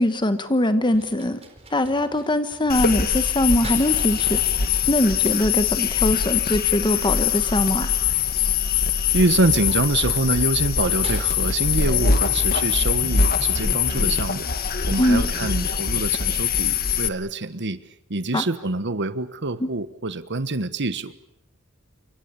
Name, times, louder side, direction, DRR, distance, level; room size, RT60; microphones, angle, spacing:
voice 1, 0.0-1.4 1.7-4.4 4.9-7.9 15.0-15.2 18.3-18.4 19.6-19.7, left 1 dB, 20° left, 10 dB, 1.2 m, -22 dB
sound 1, 0.9-5.7 7.5-16.1, right 2 dB, 25° right, 4.0 m, -45 dB
sound 2, 2.7-17.1, left 7 dB, 45° left, 1.6 m, -22 dB
voice 2, 9.1-14.5 14.9-17.8 18.1-21.1, right 2 dB, 55° right, 13 dB, 1.3 m, -25 dB
28.5 x 25.0 x 7.0 m, 0.76 s
head